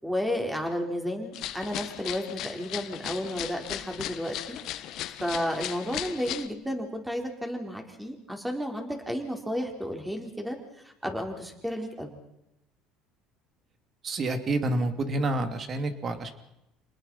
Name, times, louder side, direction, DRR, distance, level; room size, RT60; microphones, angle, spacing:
voice 1, 0.0-4.4 5.2-10.6 10.8-12.1, equal, 5° right, 3 dB, 4.5 m, -32 dB
sound 1, 1.3-6.5, left 13 dB, 60° left, 1.4 m, -37 dB
voice 2, 14.0-16.3, right 2 dB, 35° right, 8 dB, 2.8 m, -28 dB
28.0 x 20.0 x 5.7 m, 0.89 s
supercardioid pair, 100°, 0 cm